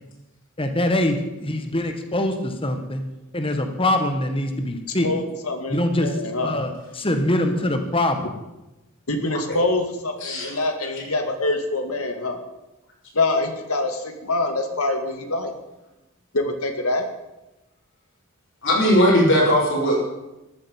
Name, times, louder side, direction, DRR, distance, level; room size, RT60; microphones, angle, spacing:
voice 1, 0.6-3.0 3.3-5.1 5.7-6.1 6.4-8.3, left 1 dB, 25° left, 6 dB, 1.6 m, -23 dB
voice 2, 5.0-6.6 9.1-12.4 13.1-15.5 16.3-17.1, left 2 dB, 90° left, 6 dB, 2.3 m, -25 dB
voice 3, 10.2-10.5 18.6-20.0, equal, 60° left, -3 dB, 6.5 m, -18 dB
14.0 x 9.0 x 9.5 m, 0.98 s
head